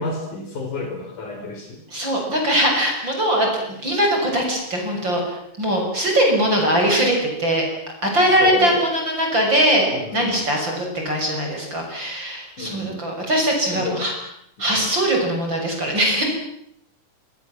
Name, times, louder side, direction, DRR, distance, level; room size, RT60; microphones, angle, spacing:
voice 1, 0.0-1.8 8.4-8.8 9.9-10.5 12.6-13.1 13.7-14.0 14.6-14.9, left 3 dB, 70° left, 3 dB, 6.1 m, -30 dB
voice 2, 1.9-5.2 5.6-7.7 8.0-14.1 14.6-16.2, right 1 dB, 35° right, 1 dB, 7.2 m, -21 dB
27.5 x 25.5 x 7.6 m, 0.75 s
omnidirectional pair, 3.7 m